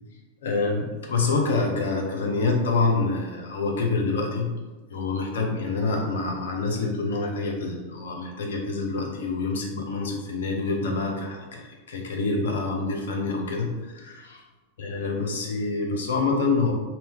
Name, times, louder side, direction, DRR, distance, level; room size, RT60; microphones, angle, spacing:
voice 1, 0.4-4.5 4.9-14.4 14.8-16.7, left 3 dB, 60° left, 1 dB, 0.5 m, -26 dB
2.7 x 2.2 x 3.5 m, 1.2 s
figure-of-eight pair, 90°, 0 cm